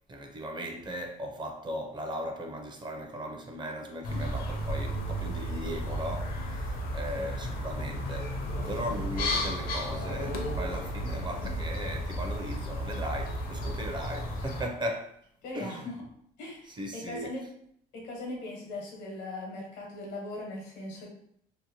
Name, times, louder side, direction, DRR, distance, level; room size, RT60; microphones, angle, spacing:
voice 1, 0.1-8.4 8.7-15.2 15.5-15.9 16.7-17.4, equal, 25° right, 0.5 m, -37 dB
sound 1, 4.0-14.6, equal, 60° left, 0.6 m, -33 dB
voice 2, 15.4-15.9 16.4-17.4 17.9-21.1, left 2 dB, 80° left, 1.0 m, -39 dB
2.8 x 2.1 x 2.8 m
cardioid pair, 110°, 17 cm